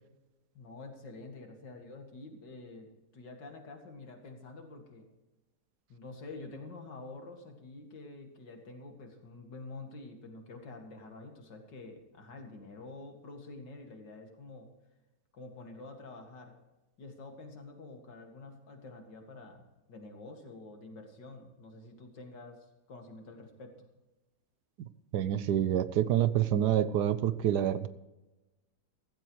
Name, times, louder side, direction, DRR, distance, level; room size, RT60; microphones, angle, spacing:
voice 1, 0.5-5.1 5.9-14.7 15.3-16.5 17.0-23.9, left 3 dB, 80° left, 4 dB, 2.7 m, -48 dB
voice 2, 24.8-27.9, right 10 dB, 70° right, 15 dB, 1.2 m, -28 dB
15.5 x 15.0 x 3.1 m, 1.0 s
omnidirectional pair, 1.9 m